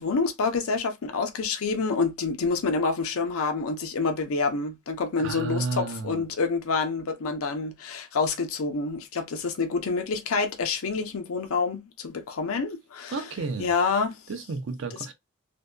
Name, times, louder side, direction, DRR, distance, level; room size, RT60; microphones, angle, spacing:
voice 1, 0.0-13.1 13.6-14.2, left 4 dB, 85° left, 0.5 m, -27 dB
voice 2, 5.2-6.3 13.1-13.7 14.3-15.1, right 4 dB, 60° right, 0.5 m, -32 dB
2.6 x 2.1 x 2.2 m
head